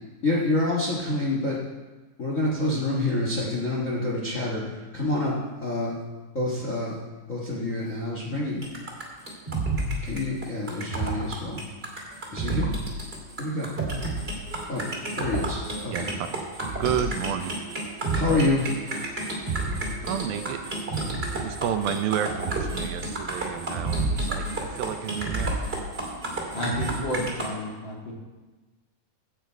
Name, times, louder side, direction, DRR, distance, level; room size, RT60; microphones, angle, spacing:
voice 1, 0.2-1.6 2.2-6.0 6.3-7.0 7.3-8.7 10.0-11.6 12.3-12.7 13.4-13.7 14.7-14.9 15.2-16.1 18.1-18.8, left 2 dB, 80° left, -4 dB, 0.7 m, -27 dB
sound 1, 8.6-27.5, right 2 dB, 20° right, 1.9 m, -30 dB
voice 2, 15.9-16.3 16.8-17.5 20.0-20.6 21.3-25.6, right 9 dB, 80° right, 8 dB, 2.4 m, -30 dB
voice 3, 26.5-28.1, equal, 40° left, -3 dB, 2.1 m, -31 dB
16.5 x 8.0 x 4.5 m, 1.2 s
omnidirectional pair, 4.4 m